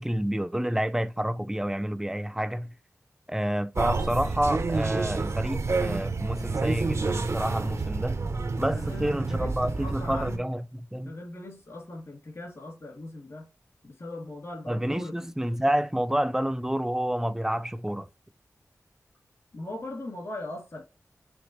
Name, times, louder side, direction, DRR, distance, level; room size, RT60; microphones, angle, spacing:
voice 1, 0.0-2.7 3.3-8.2 8.6-11.1 14.7-18.1, right 1 dB, 10° right, 0.4 m, -29 dB
sound 1, 3.7-10.4, right 3 dB, 60° right, 0.5 m, -29 dB
voice 2, 8.7-10.5 11.0-13.5 13.8-15.3 19.5-20.8, left 2 dB, 60° left, 2.5 m, -40 dB
5.2 x 3.3 x 3.1 m
wide cardioid pair, 90°, 6 cm